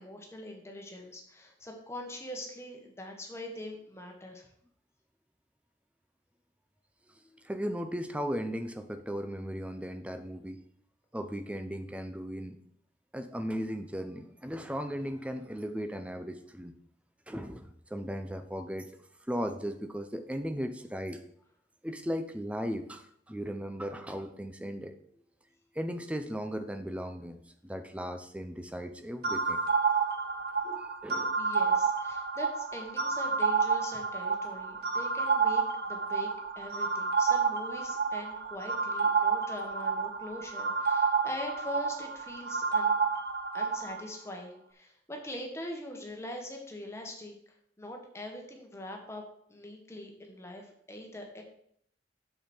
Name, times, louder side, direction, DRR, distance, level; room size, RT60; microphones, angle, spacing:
voice 1, 0.0-4.5 31.4-36.3 36.5-43.0 43.5-47.3 47.8-49.2 49.5-51.4, left 1 dB, 15° left, 2 dB, 1.5 m, -42 dB
voice 2, 7.4-10.6 11.1-12.6 13.1-16.7 17.3-18.9 19.3-21.2 21.8-24.9 25.8-29.6 30.6-31.4, equal, 5° right, 8 dB, 0.6 m, -37 dB
sound 1, 29.2-44.0, right 5 dB, 60° right, 0.9 m, -29 dB
7.9 x 7.1 x 4.4 m, 0.67 s
head